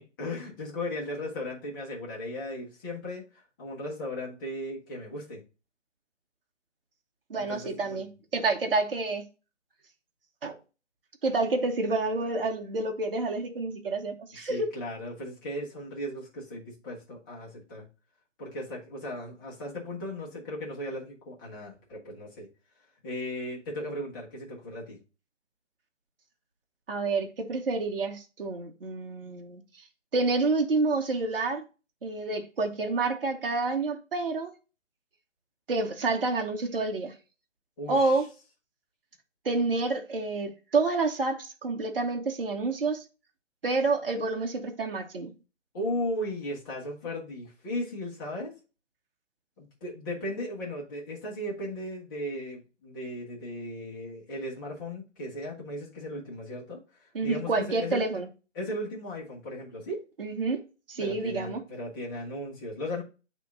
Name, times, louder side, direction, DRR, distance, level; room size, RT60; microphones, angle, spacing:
voice 1, 0.2-5.4 7.3-8.0 14.4-17.9 18.4-22.5 23.0-25.0 37.8-38.2 45.7-48.6 49.6-58.0 58.5-60.0 61.0-63.0, left 1 dB, 15° left, 1.4 m, -36 dB
voice 2, 7.3-9.3 10.4-10.6 11.2-14.7 26.9-29.6 30.1-31.6 32.0-34.5 35.7-37.1 37.9-38.3 39.4-43.0 43.6-45.3 57.1-58.3 60.2-60.6 60.9-61.6, right 3 dB, 50° right, 1.1 m, -28 dB
8.3 x 3.0 x 3.7 m
figure-of-eight pair, 155°, 37 cm